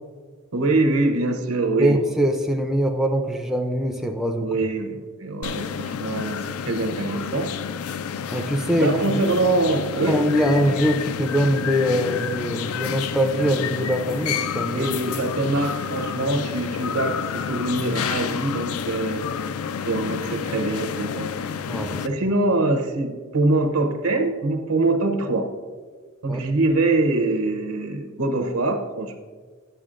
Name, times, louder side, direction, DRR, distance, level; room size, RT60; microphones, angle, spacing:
voice 1, 0.5-2.0 4.4-7.5 8.8-10.2 14.7-19.2 19.8-21.3 22.0-25.5 26.2-29.2, right 2 dB, 75° right, 6 dB, 0.8 m, -24 dB
voice 2, 1.8-4.7 8.3-9.2 10.1-14.9 21.7-22.0 26.3-26.4, equal, ahead, 3 dB, 0.4 m, -23 dB
sound 1, 5.4-22.1, left 7 dB, 70° left, 0.4 m, -29 dB
10.0 x 6.9 x 2.5 m, 1.5 s
head